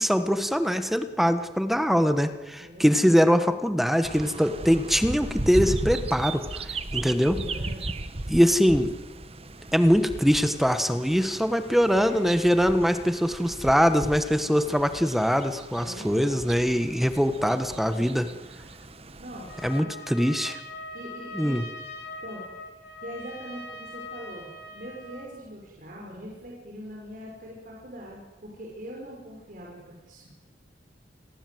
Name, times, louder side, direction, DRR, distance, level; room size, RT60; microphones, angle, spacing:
voice 1, 0.0-6.6 6.9-7.4 8.3-8.9 9.7-18.3 19.6-20.6 21.3-21.6, equal, ahead, 9 dB, 1.4 m, -23 dB
voice 2, 2.6-3.2 7.4-7.9 11.9-12.2 15.8-16.5 17.7-18.2 19.2-19.9 20.9-21.6 22.2-22.4 23.0-30.3, equal, 50° right, -2 dB, 5.9 m, -42 dB
sound 1, 4.0-19.8, right 2 dB, 35° right, 1.3 m, -36 dB
Trumpet, 19.5-25.4, left 2 dB, 70° left, 4.2 m, -41 dB
29.5 x 21.5 x 8.0 m, 1.2 s
head